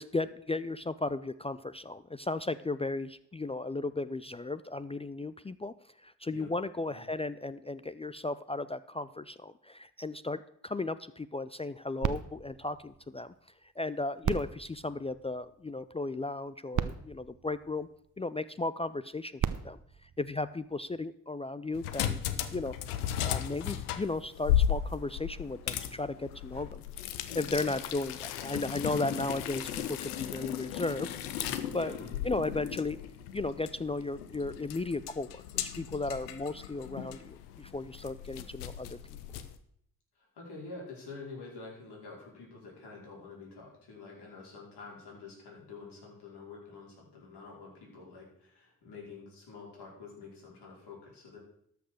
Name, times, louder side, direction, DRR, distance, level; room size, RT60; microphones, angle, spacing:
voice 1, 0.0-5.7 6.0-13.3 13.8-17.9 18.2-22.2 22.5-22.7 23.2-26.8 27.3-31.1 31.7-31.9 32.2-33.0 33.3-39.0, left 2 dB, 15° left, 14 dB, 0.4 m, -35 dB
sound 1, 12.0-13.7 14.2-15.8 16.5-16.6 16.7-18.3 19.1-21.0 21.7-21.8, right 8 dB, 45° right, 0.9 m, -37 dB
sound 2, 21.7-39.6, left 10 dB, 90° left, 0.7 m, -36 dB
voice 2, 31.7-32.2 40.1-51.4, left 3 dB, 60° left, -3 dB, 4.6 m, -47 dB
12.5 x 5.7 x 6.4 m, 0.70 s
hypercardioid pair, 45°, 44 cm